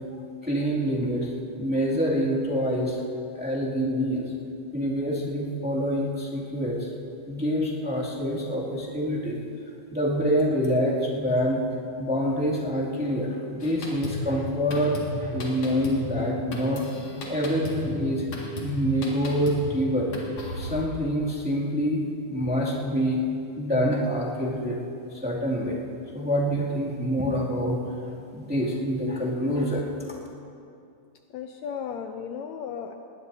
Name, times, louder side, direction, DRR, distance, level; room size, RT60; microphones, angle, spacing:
voice 1, 0.4-1.3 1.6-3.0 3.3-4.3 4.7-6.9 7.2-9.4 9.9-11.6 12.0-16.8 17.3-18.2 18.6-20.1 20.6-22.0 22.3-23.2 23.6-24.8 25.1-25.8 26.1-27.8 28.0-30.1, equal, 5° right, -6 dB, 1.8 m, -26 dB
Drum kit, 13.6-20.8, left 1 dB, 55° left, 3.1 m, -35 dB
voice 2, 31.3-32.9, left 7 dB, 75° left, 5 dB, 1.8 m, -35 dB
20.0 x 19.5 x 2.8 m, 2.6 s
omnidirectional pair, 3.5 m